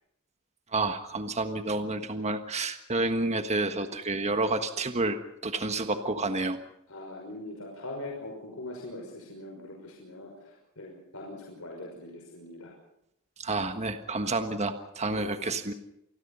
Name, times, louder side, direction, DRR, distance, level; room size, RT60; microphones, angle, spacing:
voice 1, 0.7-6.6 13.4-15.7, right 2 dB, 30° right, 8 dB, 1.5 m, -29 dB
voice 2, 6.9-12.7 15.1-15.5, left 2 dB, 70° left, 0 dB, 5.8 m, -42 dB
27.5 x 20.5 x 5.6 m, 0.81 s
head